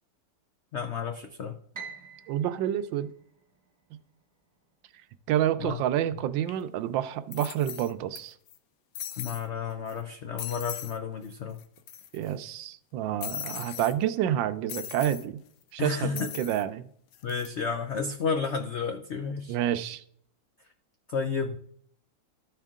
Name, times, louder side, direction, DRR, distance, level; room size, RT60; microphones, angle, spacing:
voice 1, 0.7-1.6 5.6-5.8 9.2-11.6 15.8-16.3 17.2-19.6 21.1-21.6, left 5 dB, 85° left, 0.6 m, -31 dB
Piano, 1.7-4.0, right 5 dB, 10° right, 1.1 m, -46 dB
voice 2, 2.3-3.1 3.9-4.0 5.3-8.3 12.1-15.4 15.7-16.9 19.5-20.0, right 11 dB, 85° right, 1.3 m, -29 dB
sound 1, 6.5-6.6 7.3-8.2 8.5-8.6 9.0-9.5 9.9-10.0 10.4-11.0 11.3-11.4 11.6-12.3 13.2-13.9 14.7-15.3 16.2-16.6 17.1-17.5, left 10 dB, 70° left, 1.1 m, -39 dB
13.0 x 4.5 x 3.6 m
omnidirectional pair, 2.0 m